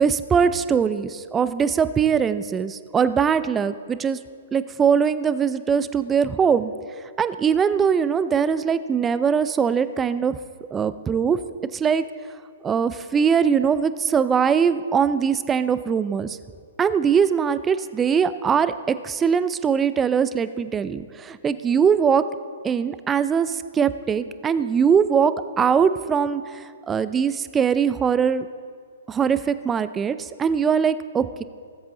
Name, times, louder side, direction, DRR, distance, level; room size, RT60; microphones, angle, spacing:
voice 1, 0.0-4.2 4.5-6.7 7.2-10.4 10.7-11.4 11.7-12.0 12.6-16.4 16.8-22.2 22.6-28.5 29.1-31.4, right 7 dB, 15° right, 13 dB, 0.5 m, -21 dB
19.0 x 8.0 x 3.8 m, 2.1 s
figure-of-eight pair, 120°, 0 cm